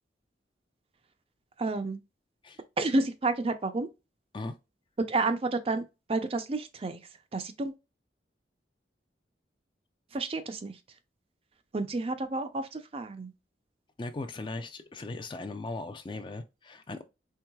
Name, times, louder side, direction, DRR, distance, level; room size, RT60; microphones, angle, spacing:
voice 1, 1.6-2.0 2.8-3.9 5.0-7.0 7.3-7.7 10.1-10.8 11.7-13.3, right 3 dB, 30° right, 0.4 m, -30 dB
voice 2, 14.0-17.0, left 2 dB, 25° left, 0.4 m, -38 dB
4.6 x 3.3 x 2.3 m
head